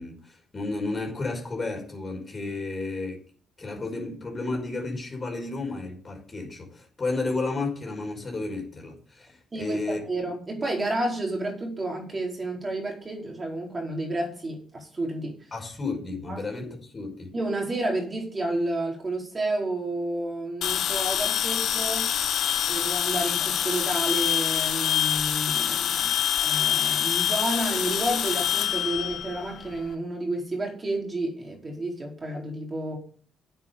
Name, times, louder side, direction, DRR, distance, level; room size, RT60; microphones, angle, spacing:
voice 1, 0.0-3.2 3.6-10.0 15.5-17.3, left 3 dB, 30° left, 1 dB, 5.4 m, -32 dB
voice 2, 9.5-15.3 16.3-16.7 17.3-22.1 22.7-26.1 26.4-33.0, right 1 dB, 30° right, 0 dB, 4.6 m, -30 dB
sound 1, 20.6-29.9, left 9 dB, 70° left, 0.9 m, -26 dB
9.1 x 8.3 x 7.0 m, 0.44 s
cardioid pair, 90°, 0 cm